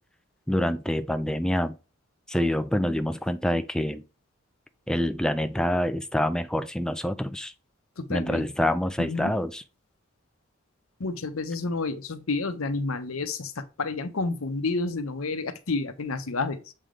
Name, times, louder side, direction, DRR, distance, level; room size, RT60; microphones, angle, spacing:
voice 1, 0.5-1.8 2.3-4.0 4.9-7.5 8.1-9.6, left 1 dB, 5° left, 0.3 m, -26 dB
voice 2, 8.0-8.5 9.0-9.3 11.0-16.7, left 3 dB, 85° left, 0.8 m, -30 dB
7.5 x 3.4 x 3.7 m
head